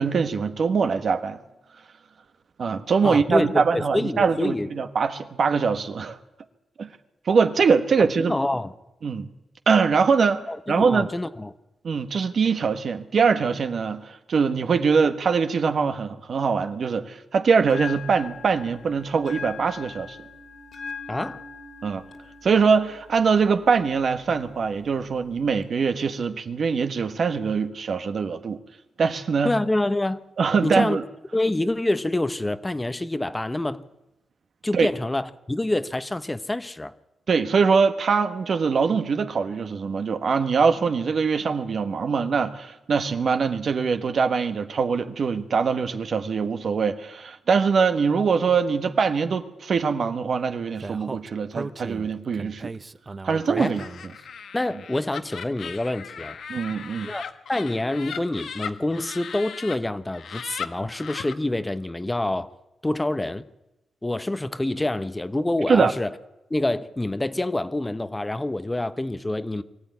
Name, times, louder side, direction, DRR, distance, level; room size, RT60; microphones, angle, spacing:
voice 1, 0.0-1.4 2.6-6.2 6.8-6.9 7.2-8.4 9.0-9.3 9.7-11.1 11.8-20.2 21.8-22.0 22.4-28.6 29.0-29.6 30.4-31.0 34.7-34.9 37.3-52.7 53.2-53.8 56.5-57.1 65.7-65.9, right 5 dB, 60° right, 1.5 m, -23 dB
voice 2, 3.0-4.7 8.0-8.7 10.5-11.5 21.1-21.4 29.4-30.2 30.6-31.0 31.3-33.8 34.6-36.9 53.6-53.8 54.5-56.4 57.0-57.2 57.5-62.5 62.8-63.4 64.0-66.1 66.5-69.6, left 1 dB, 15° left, 0.9 m, -26 dB
Bell, 17.6-25.6, left 4 dB, 60° left, 2.9 m, -41 dB
Speech, 50.8-54.2, right 3 dB, 30° right, 0.7 m, -36 dB
Laughter, 53.6-59.8 60.1-61.3, left 7 dB, 75° left, 1.4 m, -37 dB
23.5 x 14.5 x 9.6 m
cardioid pair, 95°, 0 cm